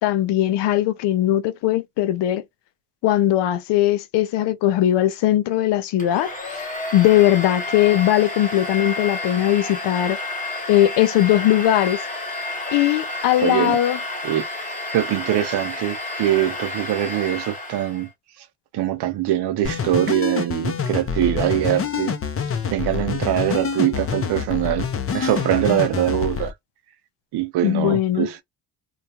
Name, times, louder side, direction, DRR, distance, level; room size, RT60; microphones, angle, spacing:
voice 1, 0.0-2.4 3.0-6.6 6.9-10.2 10.7-12.0 12.7-14.0 27.6-28.3, left 13 dB, 80° left, 0.6 m, -19 dB
Domestic sounds home sounds, 6.0-18.1, left 2 dB, 20° left, 1.1 m, -30 dB
voice 2, 13.4-13.8 14.2-14.4 14.9-18.1 18.7-22.2 22.7-24.9 25.1-26.5 27.3-28.4, right 12 dB, 75° right, 0.7 m, -22 dB
sound 1, 19.6-26.5, left 6 dB, 35° left, 0.6 m, -26 dB
2.3 x 2.3 x 2.8 m
cardioid pair, 80°, 40 cm